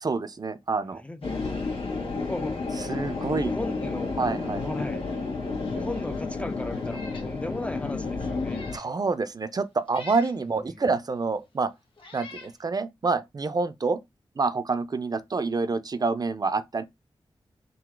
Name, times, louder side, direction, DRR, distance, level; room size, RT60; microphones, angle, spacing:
voice 1, 0.0-1.0 2.9-3.6 4.2-4.6 8.7-11.7 12.1-14.0 14.4-16.8, right 4 dB, 40° right, 0.5 m, -27 dB
voice 2, 1.0-1.4 1.9-2.6 3.4-4.1 4.6-5.1 5.7-8.6, left 1 dB, 10° left, 0.4 m, -36 dB
sound 1, 1.2-8.8, left 3 dB, 85° left, 1.6 m, -31 dB
Meow, 6.8-7.3 7.7-7.8 8.4-8.9 9.9-10.4 11.3-11.4 12.0-12.5, left 2 dB, 60° left, 1.4 m, -45 dB
3.8 x 2.7 x 4.5 m
wide cardioid pair, 90°, 10 cm